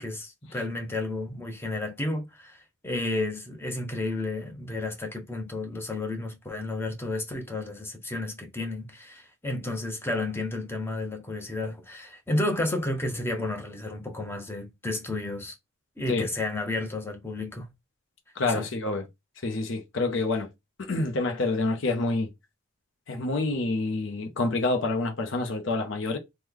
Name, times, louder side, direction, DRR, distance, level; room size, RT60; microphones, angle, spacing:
voice 1, 0.0-15.5 16.0-17.7 18.5-18.7, left 2 dB, 10° left, 0.7 m, -32 dB
voice 2, 18.4-19.0 19.4-20.5 20.8-22.3 23.1-26.2, left 3 dB, 60° left, 0.6 m, -27 dB
3.1 x 2.2 x 3.6 m
head